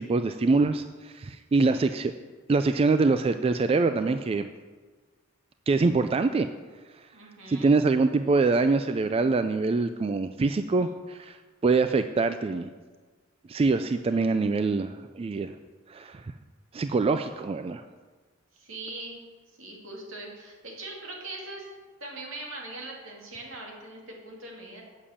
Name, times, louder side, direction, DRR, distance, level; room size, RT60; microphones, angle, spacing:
voice 1, 0.0-2.1 2.5-4.5 5.7-6.5 7.5-11.4 11.6-12.7 13.5-15.5 15.9-16.2 16.7-17.8, right 3 dB, 30° right, 9 dB, 0.3 m, -24 dB
voice 2, 7.1-7.7 14.1-14.3 18.5-19.2 19.6-21.7 22.0-24.8, right 2 dB, 75° right, -1 dB, 2.6 m, -41 dB
8.5 x 7.4 x 7.2 m, 1.4 s
head